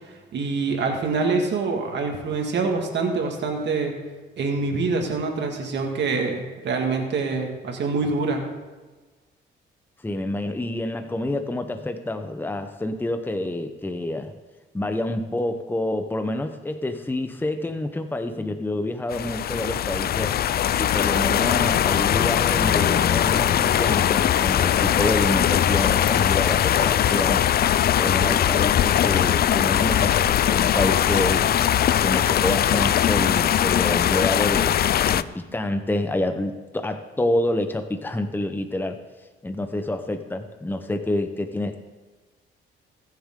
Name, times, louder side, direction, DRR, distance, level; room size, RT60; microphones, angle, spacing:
voice 1, 0.3-3.9 4.4-8.5, right 4 dB, 60° right, 3 dB, 2.1 m, -25 dB
voice 2, 10.0-14.3 14.7-20.3 20.8-27.5 28.0-31.5 32.0-34.8 35.1-39.0 39.4-41.8, left 1 dB, 10° left, 7 dB, 0.9 m, -27 dB
sound 1, 19.1-35.2, left 10 dB, 50° left, 0.4 m, -20 dB
21.5 x 7.2 x 3.8 m, 1.3 s
cardioid pair, 90°, 20 cm